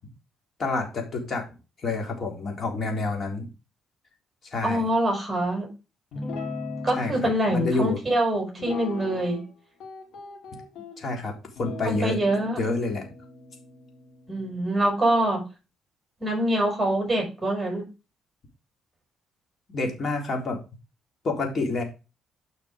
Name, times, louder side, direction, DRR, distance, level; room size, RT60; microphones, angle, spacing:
voice 1, 0.6-1.5 1.8-3.5 4.5-4.9 6.9-8.0 10.5-10.6 11.0-11.3 11.6-12.2 12.6-13.0 19.7-20.6 21.2-21.8, left 3 dB, 45° left, 2 dB, 3.7 m, -28 dB
voice 2, 4.6-5.7 6.8-9.4 11.8-12.6 14.3-15.4 16.2-17.8, right 1 dB, 15° right, 1 dB, 6.7 m, -25 dB
Guitar, 6.1-7.3 8.6-9.5 9.8-11.0 11.6-15.0, left 3 dB, 70° left, 4.7 m, -38 dB
9.9 x 5.9 x 5.1 m, 0.30 s
cardioid pair, 100°, 0 cm